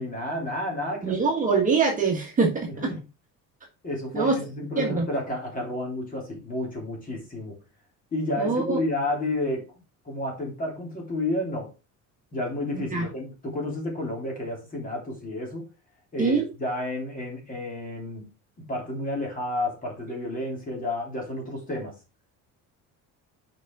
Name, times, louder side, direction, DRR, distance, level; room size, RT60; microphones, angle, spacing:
voice 1, 0.0-1.2 2.7-2.9 3.8-7.6 8.1-9.7 10.0-11.7 12.3-15.7 16.1-18.3 18.6-21.9, left 1 dB, 25° left, 3.3 m, -31 dB
voice 2, 1.0-2.9 4.1-4.3 4.8-5.1 8.4-8.8 12.9-13.1 16.2-16.5, right 4 dB, 25° right, 1.6 m, -23 dB
6.2 x 5.2 x 4.7 m
cardioid pair, 170°, 33 cm